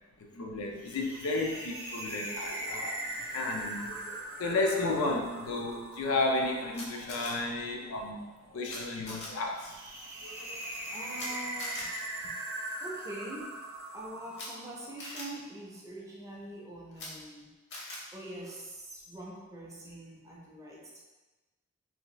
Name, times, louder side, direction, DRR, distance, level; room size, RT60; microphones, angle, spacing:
voice 1, 0.3-3.0 3.3-8.3 8.5-9.8 10.2-10.6, left 2 dB, 85° left, 1 dB, 0.5 m, -33 dB
sound 1, 0.8-15.1, right 1 dB, 60° right, 0.6 m, -41 dB
Camera, 6.7-7.3 8.7-8.8 9.1-9.3 11.1-11.3 11.6-11.8 14.3-14.5 15.0-15.2 16.9-17.1 17.7-18.0, left 2 dB, 55° left, 0.8 m, -41 dB
voice 2, 10.9-12.0 12.2-12.4 12.8-13.6 13.9-17.5 18.1-21.0, right 1 dB, 15° right, -4 dB, 0.5 m, -44 dB
2.6 x 2.2 x 3.1 m, 1.1 s
head